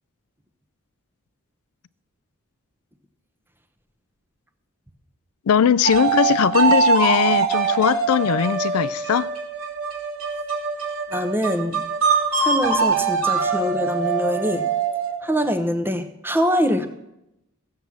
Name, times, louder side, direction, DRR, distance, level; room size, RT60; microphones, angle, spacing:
voice 1, 5.5-9.3, left 8 dB, 85° left, 0.4 m, -19 dB
sound 1, 5.9-15.3, right 5 dB, 80° right, 2.5 m, -23 dB
voice 2, 11.1-11.8 12.4-14.7 15.2-16.9, equal, 10° right, 0.9 m, -24 dB
16.0 x 7.6 x 7.1 m
head